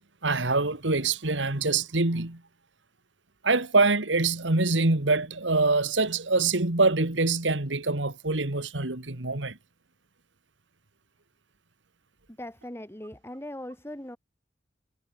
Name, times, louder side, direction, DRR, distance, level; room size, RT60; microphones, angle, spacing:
voice 1, 0.2-2.4 3.4-9.6, right 3 dB, 75° right, 2.2 m, -25 dB
voice 2, 12.3-14.2, left 1 dB, 15° left, 3.5 m, -40 dB
head